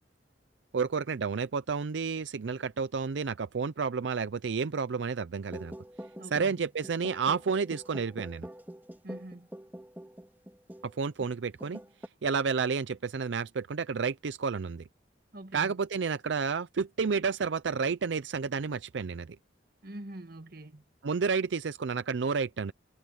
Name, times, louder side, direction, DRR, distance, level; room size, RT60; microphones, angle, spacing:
voice 1, 0.7-5.7 6.3-8.5 10.8-11.8 12.2-14.8 15.5-19.4 21.0-22.7, right 5 dB, 85° right, 0.5 m, -30 dB
sound 1, 5.5-10.9 11.2-11.3 11.6-12.1, right 1 dB, 10° right, 3.0 m, -45 dB
voice 2, 6.2-6.7 9.0-9.5 15.3-15.8 19.8-20.8, right 1 dB, 55° right, 1.7 m, -45 dB
head